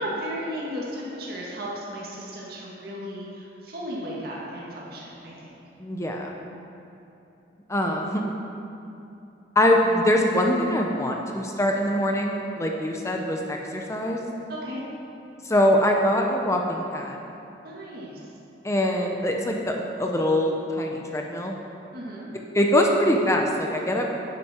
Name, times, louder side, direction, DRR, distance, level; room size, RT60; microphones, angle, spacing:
voice 1, 0.0-5.5 14.5-14.8 17.6-18.3 21.9-22.3, equal, 55° right, -5 dB, 2.1 m, -35 dB
voice 2, 5.8-6.3 7.7-8.2 9.6-14.2 15.5-17.2 18.6-21.5 22.5-24.1, left 1 dB, 15° left, 1 dB, 0.8 m, -23 dB
13.5 x 10.5 x 4.5 m, 2.8 s
head